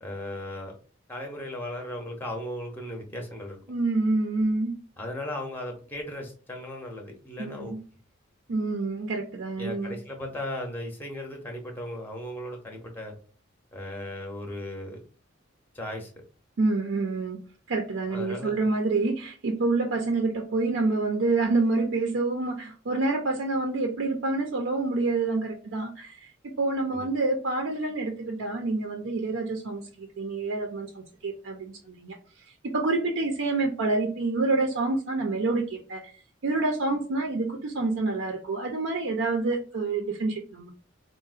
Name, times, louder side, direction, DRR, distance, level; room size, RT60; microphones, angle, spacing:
voice 1, 0.0-0.8 1.1-3.6 5.0-7.8 9.6-13.2 13.7-15.0 15.7-16.1 18.1-18.6 26.9-27.1, left 1 dB, 10° left, 0.6 m, -36 dB
voice 2, 3.7-4.8 7.4-7.8 8.5-10.0 16.6-17.4 17.7-32.2 32.6-36.1 36.4-40.7, right 3 dB, 80° right, 0.5 m, -27 dB
3.7 x 2.0 x 2.4 m
head